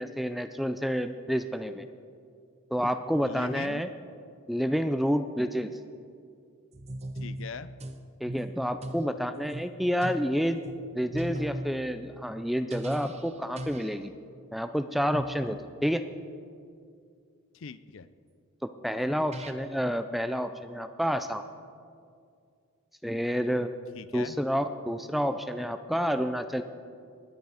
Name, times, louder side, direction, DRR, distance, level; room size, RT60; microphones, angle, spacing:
voice 1, 0.0-1.9 2.7-3.9 4.5-5.7 8.2-10.6 10.9-14.1 14.5-16.0 18.8-21.4 23.0-23.7 24.1-26.6, equal, ahead, 9 dB, 0.4 m, -29 dB
voice 2, 3.3-3.8 7.2-7.7 17.5-18.1 23.9-24.4, left 5 dB, 60° left, 15 dB, 0.5 m, -41 dB
sound 1, 6.7-8.0 8.3-9.1 9.5-9.7 10.0-10.3 10.6-10.8 11.1-11.8 12.7-13.3 13.6-14.0 15.1-15.4 18.8-18.9 19.3-19.5, right 1 dB, 30° right, 0.7 m, -38 dB
19.5 x 11.0 x 5.0 m, 2.3 s
head